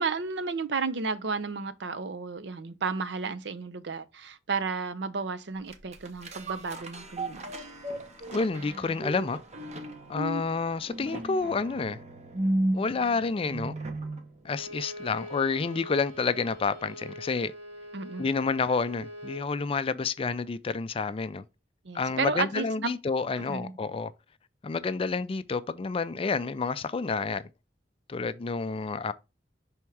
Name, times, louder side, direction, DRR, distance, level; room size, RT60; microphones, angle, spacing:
voice 1, 0.0-7.5 17.9-18.3 21.8-22.9 23.5-23.7, right 4 dB, 70° right, 0.6 m, -32 dB
sound 1, 5.7-14.3 14.7-14.8, right 1 dB, 40° right, 0.9 m, -34 dB
voice 2, 8.3-9.4 10.1-12.0 12.7-13.8 14.4-17.5 18.2-21.4 21.9-24.1 24.6-27.4 28.1-29.1, left 4 dB, 30° left, 0.4 m, -29 dB
Bowed string instrument, 14.5-19.5, equal, 85° right, 2.1 m, -43 dB
5.8 x 3.5 x 4.6 m
head